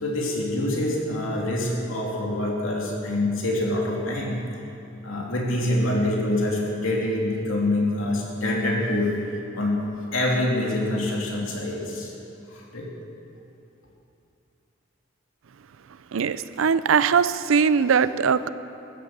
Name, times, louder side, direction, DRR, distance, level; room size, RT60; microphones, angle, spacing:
voice 1, 0.0-4.4 5.0-9.8 10.1-12.1 12.5-12.9, left 1 dB, 75° left, -2 dB, 2.8 m, -25 dB
voice 2, 16.1-18.5, right 6 dB, 75° right, 15 dB, 0.5 m, -21 dB
14.5 x 10.5 x 7.3 m, 2.8 s
head